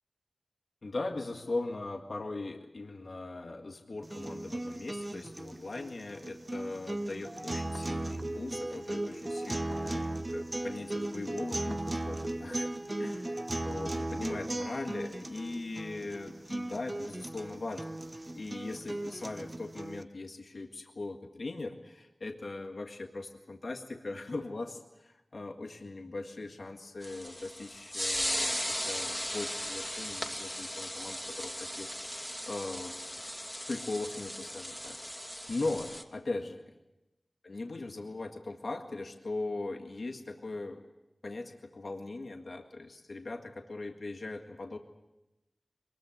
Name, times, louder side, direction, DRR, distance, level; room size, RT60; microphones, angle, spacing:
voice 1, 0.8-12.7 13.0-18.0 18.3-33.0 33.7-35.0 35.5-36.8 37.4-40.8 41.2-44.8, left 2 dB, 70° left, 3 dB, 1.8 m, -40 dB
sound 1, 4.0-20.0, right 1 dB, 35° right, 0.8 m, -37 dB
sound 2, 27.0-36.0, equal, 5° left, 2.5 m, -37 dB
22.5 x 21.0 x 8.0 m, 0.95 s
cardioid pair, 40°, 0 cm